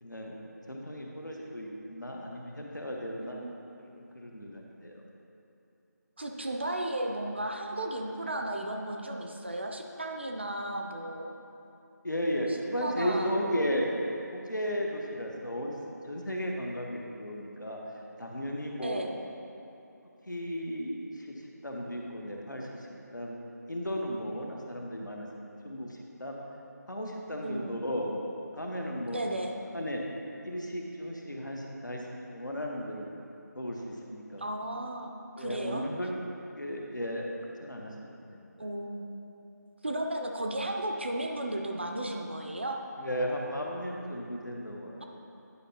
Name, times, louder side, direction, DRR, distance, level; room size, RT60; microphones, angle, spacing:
voice 1, 0.0-0.4 0.7-3.4 4.0-5.0 12.0-13.9 14.3-15.8 16.0-17.8 18.2-19.0 20.3-21.3 21.6-22.7 23.1-23.4 23.7-25.3 25.6-26.4 26.9-28.1 28.5-29.2 29.7-30.0 30.4-33.1 33.5-34.4 35.4-36.3 36.5-38.7 43.0-45.0, equal, 80° left, 0 dB, 1.1 m, -35 dB
voice 2, 3.2-3.5 6.2-11.3 12.8-13.3 18.8-19.1 27.4-27.8 29.1-29.6 34.4-35.8 38.6-39.1 39.8-42.8, right 1 dB, 35° right, 2 dB, 0.5 m, -34 dB
9.9 x 5.5 x 2.7 m, 2.8 s
figure-of-eight pair, 165°, 10 cm